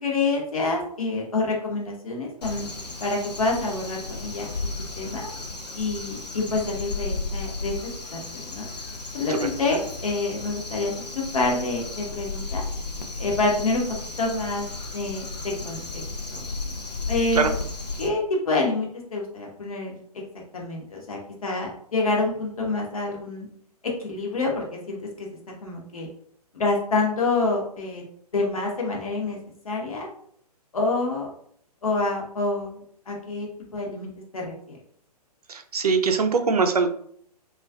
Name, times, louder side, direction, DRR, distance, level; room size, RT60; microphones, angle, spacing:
voice 1, 0.0-2.7 3.0-4.5 5.0-5.2 5.7-7.7 8.1-8.6 9.1-12.6 13.2-13.8 14.2-14.6 14.9-16.0 16.3-16.4 17.1-17.5 18.0-19.9 20.5-23.5 24.0-26.1 26.5-28.0 28.3-29.4 29.6-30.1 30.7-31.3 31.8-34.8, left 3 dB, 60° left, -1 dB, 0.8 m, -27 dB
Crow, 2.4-18.1, left 3 dB, 90° left, 0.4 m, -34 dB
voice 2, 35.5-36.9, right 4 dB, 70° right, 7 dB, 0.4 m, -22 dB
2.3 x 2.3 x 2.3 m, 0.62 s
figure-of-eight pair, 125°, 20 cm